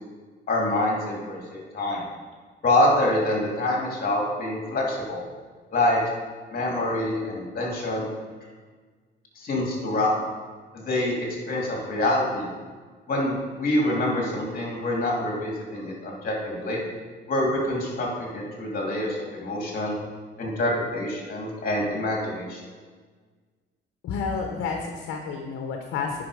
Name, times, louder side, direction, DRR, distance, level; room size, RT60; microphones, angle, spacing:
voice 1, 0.5-2.0 2.6-5.2 5.7-6.0 6.5-8.1 9.4-10.1 10.7-11.1 11.5-12.5 13.1-16.8 17.3-20.0 20.4-22.6, left 1 dB, 50° left, -1 dB, 2.8 m, -26 dB
voice 2, 24.0-26.2, left 5 dB, 90° left, 3 dB, 0.9 m, -30 dB
9.7 x 5.7 x 5.0 m, 1.5 s
cardioid pair, 90°, 20 cm